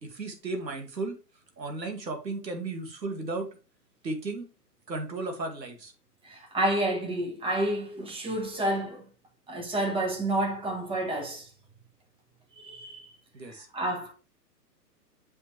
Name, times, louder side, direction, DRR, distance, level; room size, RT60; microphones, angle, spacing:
voice 1, 0.0-1.2 1.6-3.5 4.0-4.5 4.9-5.9 13.3-13.7, right 3 dB, 90° right, 2.2 m, -34 dB
voice 2, 6.2-9.1 9.5-11.5 12.6-13.1 13.7-14.1, right 1 dB, 10° right, 1.5 m, -29 dB
7.2 x 5.7 x 3.2 m
hypercardioid pair, 130°, 50 cm